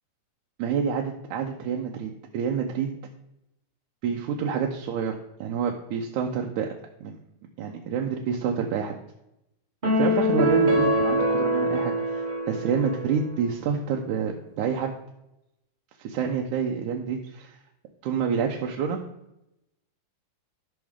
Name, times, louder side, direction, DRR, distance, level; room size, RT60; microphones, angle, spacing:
voice 1, 0.6-2.9 4.0-6.7 7.0-7.2 7.6-9.0 10.0-14.9 16.0-17.6 18.0-19.0, right 6 dB, 80° right, 2 dB, 2.2 m, -28 dB
sound 1, 9.8-13.3, equal, 25° right, 1.3 m, -24 dB
12.0 x 6.2 x 3.6 m, 0.87 s
omnidirectional pair, 3.5 m